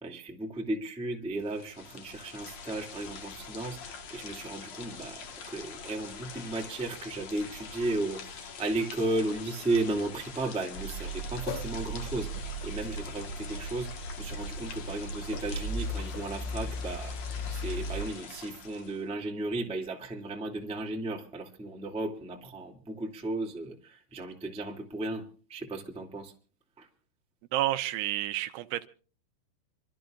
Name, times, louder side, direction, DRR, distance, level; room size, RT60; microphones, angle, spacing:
voice 1, 0.0-3.8 4.1-13.9 14.2-26.3 26.8-26.9, right 2 dB, 5° right, 0.8 m, -35 dB
sound 1, 1.4-19.0, left 5 dB, 60° left, 1.8 m, -45 dB
Car, 10.8-18.0, right 1 dB, 85° left, 5.4 m, -37 dB
voice 2, 27.5-28.9, right 15 dB, 80° right, 3.1 m, -30 dB
27.0 x 13.5 x 2.5 m
omnidirectional pair, 5.5 m